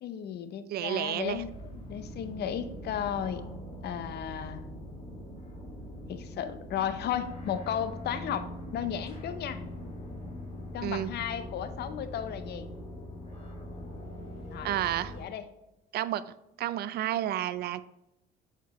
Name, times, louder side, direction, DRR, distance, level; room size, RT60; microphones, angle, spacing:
voice 1, 0.0-3.4 3.8-4.6 6.1-9.6 10.7-12.7 14.5-14.7 15.1-15.4, left 9 dB, 60° left, 10 dB, 0.7 m, -34 dB
voice 2, 0.7-1.4 10.8-11.1 14.6-15.1 15.9-16.2 16.6-17.9, right 12 dB, 60° right, 15 dB, 0.4 m, -31 dB
sound 1, 1.2-15.2, equal, 30° left, 1.9 m, -42 dB
6.9 x 4.5 x 3.1 m, 0.91 s
supercardioid pair, 75°, 19 cm